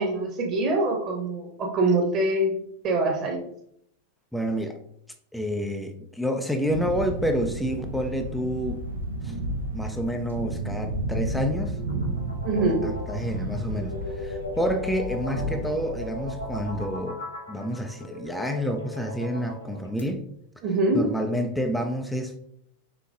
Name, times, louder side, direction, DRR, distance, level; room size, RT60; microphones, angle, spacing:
voice 1, 0.0-2.6 2.8-3.4 12.4-12.8 20.6-21.0, right 2 dB, 35° right, 1 dB, 1.2 m, -24 dB
voice 2, 4.3-4.8 5.3-8.9 9.2-9.3 9.7-11.7 12.6-17.2 17.5-20.2 20.9-22.4, equal, ahead, 4 dB, 0.4 m, -29 dB
sound 1, 6.7-16.9, right 1 dB, 65° right, 0.6 m, -32 dB
sound 2, 11.5-20.0, left 1 dB, 80° left, 1.0 m, -38 dB
5.2 x 3.7 x 2.4 m, 0.70 s
figure-of-eight pair, 90°, 0 cm